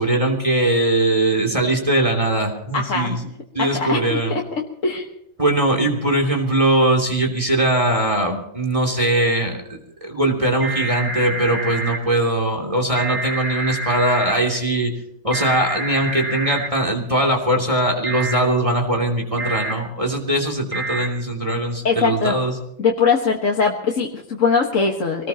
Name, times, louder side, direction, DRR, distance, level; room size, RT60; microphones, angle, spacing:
voice 1, 0.0-4.3 5.4-14.9 15.2-22.5, right 1 dB, 15° right, 2 dB, 2.9 m, -20 dB
voice 2, 2.7-3.1 3.6-5.1 21.8-22.4 22.8-25.3, left 5 dB, 45° left, 0 dB, 1.7 m, -21 dB
sound 1, 10.6-12.0 13.0-14.3 15.3-16.7 18.0-18.4 19.4-19.7 20.7-21.1, right 2 dB, 45° right, 5.2 m, -27 dB
25.0 x 18.5 x 3.0 m, 0.79 s
omnidirectional pair, 2.1 m